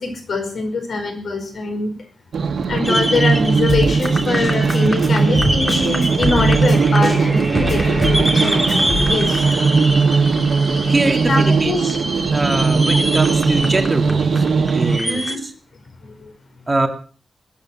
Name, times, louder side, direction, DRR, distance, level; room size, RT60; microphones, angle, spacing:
voice 1, 0.0-1.9 2.7-9.4 11.2-11.9 12.7-12.8 15.0-15.4, left 3 dB, 65° left, 6 dB, 4.8 m, -23 dB
sound 1, 2.3-15.0, right 4 dB, 80° right, 1.4 m, -18 dB
sound 2, 2.8-15.4, equal, 5° left, 2.3 m, -26 dB
Drum kit, 3.7-9.0, left 3 dB, 45° left, 5.1 m, -26 dB
voice 2, 10.9-12.0 12.3-14.5 14.7-15.5 16.7-16.9, right 2 dB, 25° right, 5 dB, 2.3 m, -23 dB
20.0 x 9.9 x 6.2 m, 0.39 s
wide cardioid pair, 120°, 0 cm